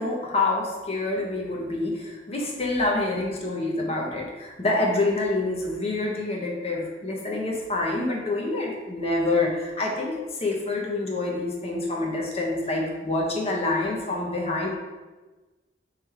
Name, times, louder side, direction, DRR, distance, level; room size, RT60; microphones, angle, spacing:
voice 1, 0.0-10.1 10.4-14.7, left 2 dB, 35° left, -1 dB, 0.8 m, -27 dB
3.4 x 3.2 x 4.7 m, 1.2 s
head